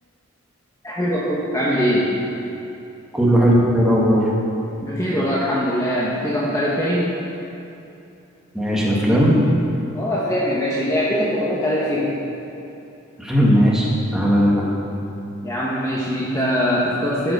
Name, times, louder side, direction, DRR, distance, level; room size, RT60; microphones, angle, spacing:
voice 1, 0.8-2.1 4.8-7.1 9.9-12.1 15.4-17.3, equal, 15° left, -7 dB, 1.2 m, -22 dB
voice 2, 3.1-4.3 8.5-9.4 13.2-14.6, equal, 5° right, -5 dB, 1.7 m, -17 dB
13.0 x 5.9 x 6.3 m, 2.8 s
head